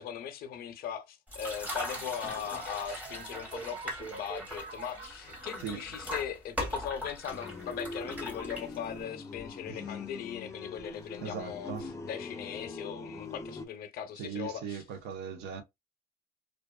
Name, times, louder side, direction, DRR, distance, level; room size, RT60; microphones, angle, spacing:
voice 1, 0.0-14.8, left 9 dB, 60° left, 0.6 m, -39 dB
sound 1, 1.3-9.0, left 1 dB, 10° right, 1.0 m, -40 dB
sound 2, 1.6-5.8, right 5 dB, 40° right, 0.4 m, -47 dB
sound 3, 7.3-13.6, left 3 dB, 15° left, 0.5 m, -42 dB
voice 2, 11.2-11.9 14.2-15.6, right 7 dB, 75° right, 0.7 m, -39 dB
2.5 x 2.3 x 2.2 m
cardioid pair, 110°, 17 cm